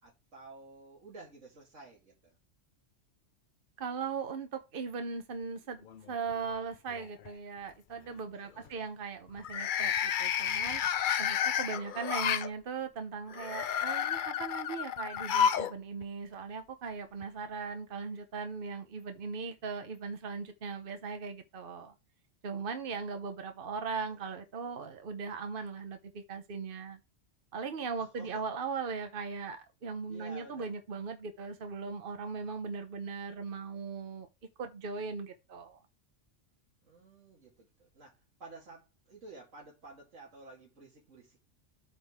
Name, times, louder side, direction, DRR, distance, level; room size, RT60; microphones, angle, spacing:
voice 1, 0.0-2.3 8.3-8.9 23.2-23.4 24.1-24.4 28.0-28.4 30.1-30.8 36.8-41.4, right 3 dB, 85° right, 2.6 m, -52 dB
voice 2, 3.8-10.8 11.2-21.9 22.4-27.0 27.5-34.3 34.6-35.8, right 5 dB, 50° right, 1.1 m, -39 dB
sound 1, 5.9-6.5 6.9-7.3 9.4-12.5 13.3-15.7 16.0-16.1 17.2-17.3, left 8 dB, 55° left, 0.6 m, -31 dB
8.1 x 6.0 x 3.6 m
omnidirectional pair, 1.2 m